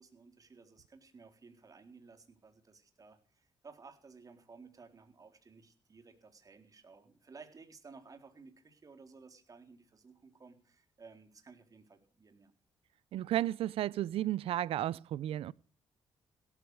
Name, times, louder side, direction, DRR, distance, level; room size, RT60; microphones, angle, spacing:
voice 1, 0.0-12.5, right 4 dB, 35° right, 3.9 m, -56 dB
voice 2, 13.1-15.5, right 13 dB, 80° right, 0.6 m, -33 dB
17.0 x 13.5 x 4.9 m
cardioid pair, 85°, 10 cm